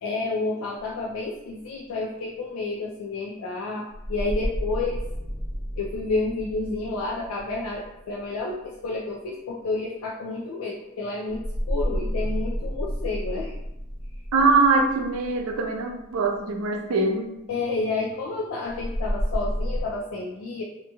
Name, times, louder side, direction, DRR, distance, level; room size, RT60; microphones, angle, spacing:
voice 1, 0.0-5.0 5.8-13.5 17.5-20.6, left 3 dB, 80° left, -3 dB, 0.4 m, -30 dB
sound 1, 0.9-1.0 3.9-8.6 11.3-16.4 18.7-19.8, equal, 55° right, 0.7 m, -31 dB
voice 2, 14.3-17.3, right 3 dB, 90° right, 3 dB, 0.4 m, -22 dB
2.7 x 2.2 x 2.8 m, 0.92 s
head